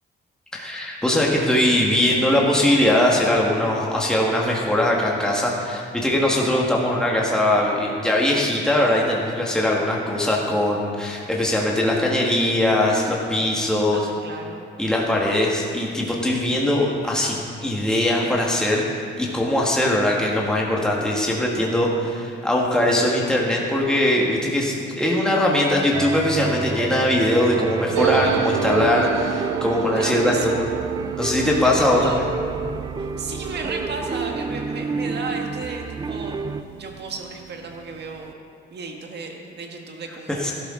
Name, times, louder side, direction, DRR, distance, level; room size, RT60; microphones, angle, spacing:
voice 1, 0.5-14.1 14.8-18.8 19.2-30.6 31.2-32.3 40.3-40.5, left 1 dB, 5° left, -3 dB, 1.6 m, -21 dB
voice 2, 13.9-14.7 29.9-30.7 31.6-32.2 33.0-38.3 38.7-40.5, right 4 dB, 60° right, 2 dB, 1.7 m, -34 dB
sound 1, 25.9-36.6, right 4 dB, 20° right, 0.4 m, -30 dB
sound 2, 27.9-37.1 37.4-37.5 37.7-38.3, right 10 dB, 85° right, 0.4 m, -30 dB
12.5 x 11.5 x 3.8 m, 2.3 s
cardioid pair, 90°, 20 cm